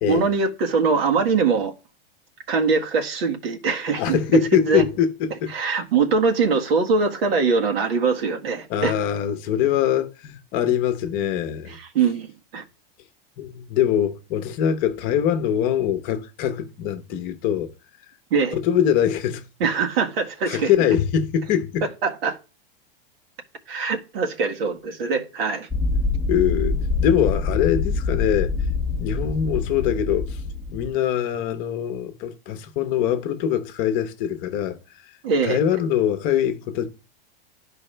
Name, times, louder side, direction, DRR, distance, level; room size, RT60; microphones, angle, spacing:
voice 1, 0.0-1.7 2.5-4.2 4.5-4.8 5.5-8.9 11.9-12.6 18.3-18.6 19.6-20.7 22.0-22.4 23.7-25.7 35.2-35.6, right 5 dB, 85° right, 1.8 m, -22 dB
voice 2, 4.0-5.5 8.7-11.8 13.4-17.7 18.5-19.5 20.5-21.8 26.3-28.5 29.0-30.4 30.7-34.8 35.4-36.9, left 9 dB, 30° left, 0.8 m, -23 dB
sound 1, 25.7-30.9, left 4 dB, ahead, 0.7 m, -25 dB
12.0 x 4.7 x 3.3 m
supercardioid pair, 170°, 29 cm